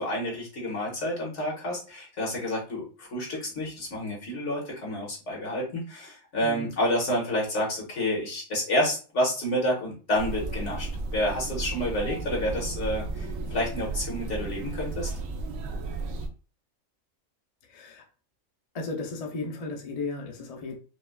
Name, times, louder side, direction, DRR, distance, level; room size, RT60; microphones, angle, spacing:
voice 1, 0.0-15.1, left 1 dB, 60° left, 1.7 m, -29 dB
sound 1, 10.1-16.3, right 3 dB, 75° right, 1.0 m, -34 dB
voice 2, 17.7-18.0 18.7-20.8, left 3 dB, 45° left, 0.5 m, -35 dB
5.0 x 2.3 x 2.3 m
omnidirectional pair, 1.4 m